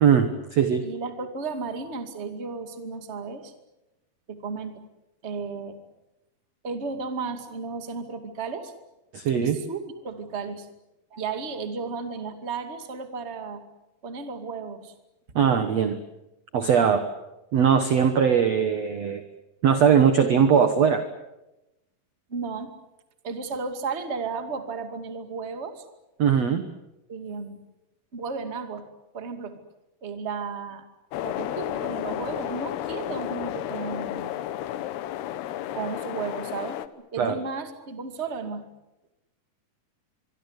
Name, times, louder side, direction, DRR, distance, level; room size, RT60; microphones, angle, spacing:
voice 1, 0.0-0.9 9.1-9.6 11.1-11.2 15.4-16.0 16.5-17.1 17.5-19.2 19.6-21.0 26.2-26.7 37.2-37.4, right 7 dB, 60° right, 9 dB, 1.9 m, -20 dB
voice 2, 0.8-3.5 4.3-4.8 5.2-5.8 6.6-8.7 9.3-9.8 10.0-10.7 11.2-13.6 14.0-14.9 22.3-22.7 23.2-25.8 27.1-27.6 28.1-28.9 29.1-29.6 30.0-30.9 31.2-34.5 35.7-36.8 37.1-38.7, right 4 dB, 25° right, 8 dB, 1.8 m, -34 dB
sound 1, 31.1-36.9, left 12 dB, 85° left, 3.1 m, -32 dB
25.0 x 23.5 x 8.2 m, 0.94 s
omnidirectional pair, 4.5 m